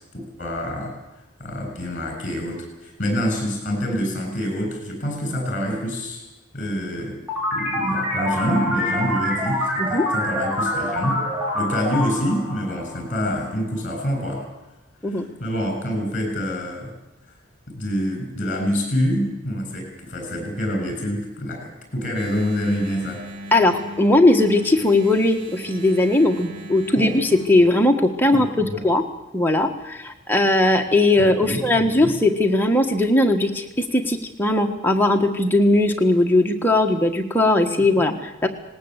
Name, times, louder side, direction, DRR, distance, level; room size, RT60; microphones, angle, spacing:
voice 1, 0.1-0.9 1.4-6.2 6.5-7.2 7.5-11.2 11.5-14.5 15.0-16.9 17.7-23.2 27.0-27.1 28.3-28.8 31.2-32.2 37.9-38.2, equal, 40° left, 3 dB, 7.5 m, -26 dB
sound 1, 7.3-13.5, left 1 dB, 10° right, 7.4 m, -26 dB
Engine, 22.1-27.7, right 1 dB, 65° right, 2.6 m, -39 dB
voice 2, 23.5-29.0 29.3-38.5, left 2 dB, 10° left, 3 dB, 1.5 m, -19 dB
19.0 x 19.0 x 8.2 m, 0.97 s
head